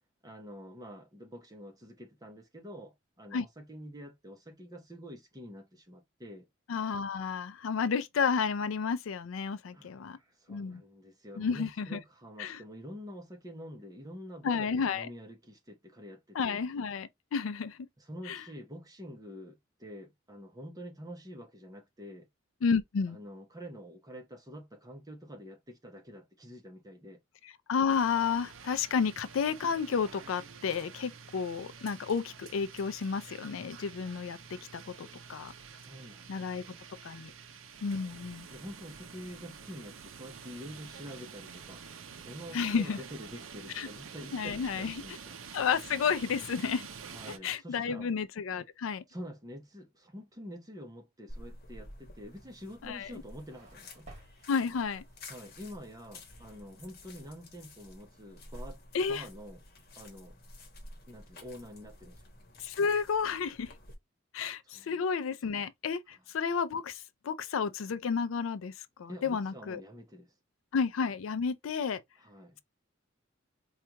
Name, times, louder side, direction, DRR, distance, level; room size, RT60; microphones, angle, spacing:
voice 1, 0.2-6.5 9.7-16.6 18.0-22.3 23.1-27.2 35.7-37.4 37.7-38.1 38.5-45.4 47.1-48.1 49.1-54.1 55.3-58.8 59.0-59.6 60.0-60.4 61.1-62.2 64.7-65.0 69.1-70.3 72.2-72.6, equal, 20° right, 0.9 m, -47 dB
voice 2, 6.7-10.2 10.5-10.8 11.4-12.0 12.4-12.6 14.4-15.1 16.3-17.9 18.3-18.4 22.6-23.2 27.4-35.5 36.3-36.6 37.0-37.3 37.8-38.5 42.5-43.0 43.7-43.9 44.3-44.9 45.5-46.9 47.4-49.0 52.8-53.2 54.5-55.0 58.9-59.3 62.6-63.7 64.3-69.8 70.7-72.0, left 6 dB, 80° left, 0.4 m, -31 dB
sound 1, 27.9-47.4, right 6 dB, 75° right, 0.6 m, -48 dB
sound 2, 51.3-63.9, left 1 dB, 50° left, 1.0 m, -51 dB
sound 3, 52.8-55.5, right 2 dB, 35° right, 1.6 m, -56 dB
4.4 x 2.4 x 2.8 m
head